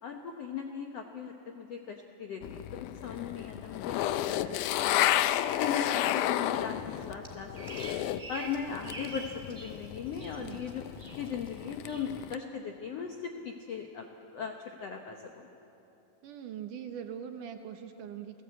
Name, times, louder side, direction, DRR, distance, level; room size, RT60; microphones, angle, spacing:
voice 1, 0.0-5.1 5.6-7.8 8.3-10.8 11.2-14.1 14.3-15.5, left 6 dB, 70° left, 3 dB, 1.5 m, -38 dB
sound 1, 2.4-8.3 8.6-12.4, left 13 dB, 90° left, 1.7 m, -32 dB
Bird vocalization bird call bird song, 7.2-9.8 10.1-10.7 11.0-11.5 11.9-12.1, right 2 dB, 20° right, 2.0 m, -45 dB
voice 2, 16.2-18.4, right 8 dB, 70° right, 6 dB, 2.4 m, -42 dB
29.5 x 17.5 x 8.3 m, 2.9 s
omnidirectional pair, 4.4 m